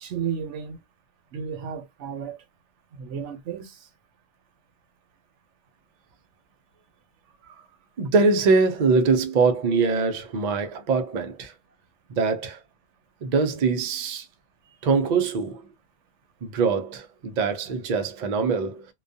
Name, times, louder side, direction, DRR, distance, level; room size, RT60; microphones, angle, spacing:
voice 1, 0.0-0.8 1.3-2.4 3.0-3.7, right 7 dB, 80° right, 0.9 m, -33 dB
voice 2, 8.0-11.5 12.1-12.6 13.2-14.3 14.8-15.6 16.4-18.9, right 4 dB, 55° right, 0.5 m, -23 dB
2.3 x 2.2 x 2.6 m
omnidirectional pair, 1.2 m